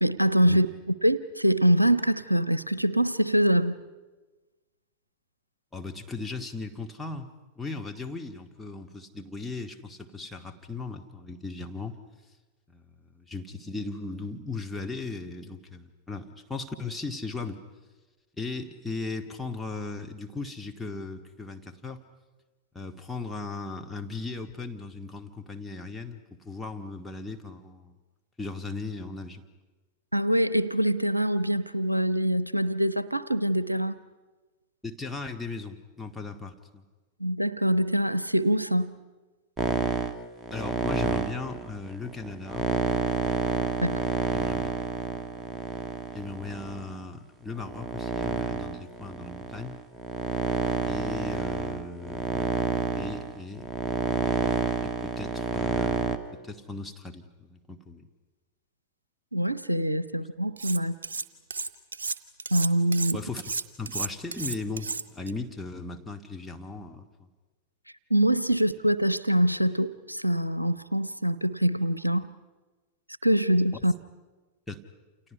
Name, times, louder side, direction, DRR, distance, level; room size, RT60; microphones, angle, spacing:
voice 1, 0.0-3.8 30.1-33.9 37.2-39.0 43.8-44.2 59.3-60.9 62.5-63.2 68.1-72.3 73.2-73.9, right 1 dB, 90° right, 17 dB, 0.8 m, -24 dB
voice 2, 5.7-7.3 7.6-12.0 12.7-17.6 18.4-22.0 22.7-28.0 28.4-29.4 34.8-36.8 40.5-42.7 44.3-44.7 46.1-49.8 50.9-52.6 52.9-53.7 54.8-58.0 63.1-67.3 74.7-74.8, left 3 dB, 5° left, 2 dB, 2.0 m, -37 dB
sound 1, 39.6-46.9 47.6-56.2, right 3 dB, 15° right, 1.5 m, -29 dB
Cutlery silverware, 60.6-61.2 61.5-65.3, right 4 dB, 70° right, 1.1 m, -32 dB
29.5 x 28.5 x 5.7 m, 1.2 s
figure-of-eight pair, 90°, 0 cm